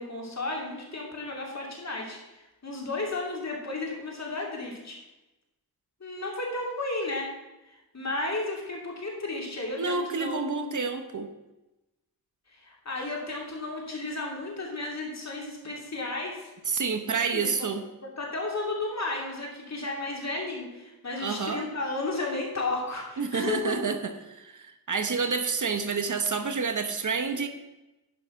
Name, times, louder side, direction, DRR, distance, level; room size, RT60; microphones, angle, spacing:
voice 1, 0.0-5.0 6.0-7.3 7.7-10.8 12.5-16.5 17.1-17.7 18.2-23.8, left 2 dB, 45° left, -1 dB, 2.8 m, -33 dB
voice 2, 9.8-11.3 16.7-17.8 21.2-21.7 23.2-27.5, right 5 dB, 55° right, 8 dB, 0.9 m, -29 dB
11.0 x 5.5 x 5.7 m, 1.0 s
wide cardioid pair, 80°, 37 cm